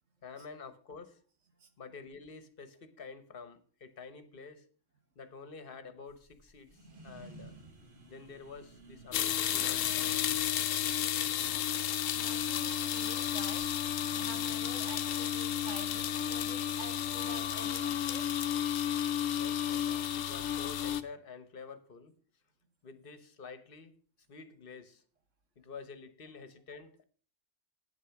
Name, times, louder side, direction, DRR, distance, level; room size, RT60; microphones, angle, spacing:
voice 1, 0.2-1.2 1.8-4.7 5.1-7.6 8.1-10.4 19.4-22.1 22.8-23.9 24.3-25.0 25.6-27.0, left 5 dB, 45° left, 11 dB, 1.2 m, -49 dB
sound 1, 6.1-16.1, right 2 dB, 45° right, 1.5 m, -55 dB
sound 2, 9.1-21.0, left 10 dB, 80° left, 1.0 m, -32 dB
voice 2, 12.1-13.8 14.2-18.4, right 4 dB, 70° right, 8 dB, 1.6 m, -48 dB
9.1 x 8.3 x 5.8 m, 0.43 s
omnidirectional pair, 1.3 m